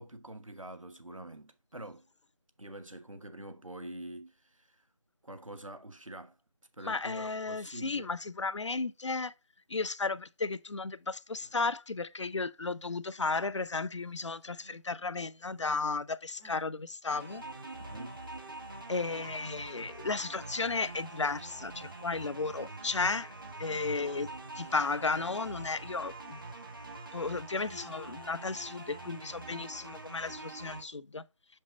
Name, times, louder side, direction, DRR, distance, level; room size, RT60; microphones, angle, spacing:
voice 1, 0.0-2.1 2.6-4.8 5.2-6.4 6.7-8.1 17.8-18.2, right 1 dB, 85° right, 1.3 m, -46 dB
voice 2, 6.8-9.3 9.7-17.4 18.9-23.3 23.6-24.3 24.6-26.4 27.1-31.2, left 3 dB, 65° left, 0.5 m, -34 dB
sound 1, 11.1-11.7 12.0-13.4 13.7-15.9 16.4-16.8, right 1 dB, 65° right, 2.2 m, -63 dB
sound 2, 17.1-30.8, right 2 dB, 40° right, 1.4 m, -45 dB
5.8 x 5.4 x 3.9 m
figure-of-eight pair, 165°, 16 cm